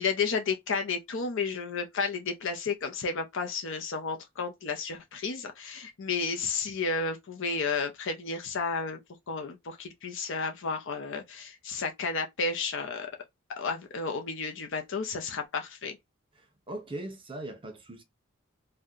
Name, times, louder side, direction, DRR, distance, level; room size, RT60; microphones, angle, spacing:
voice 1, 0.0-9.0 9.3-13.1 13.6-16.0, left 4 dB, 65° left, 0.6 m, -32 dB
voice 2, 16.7-18.0, right 1 dB, 25° right, 0.8 m, -39 dB
2.7 x 2.2 x 3.6 m
head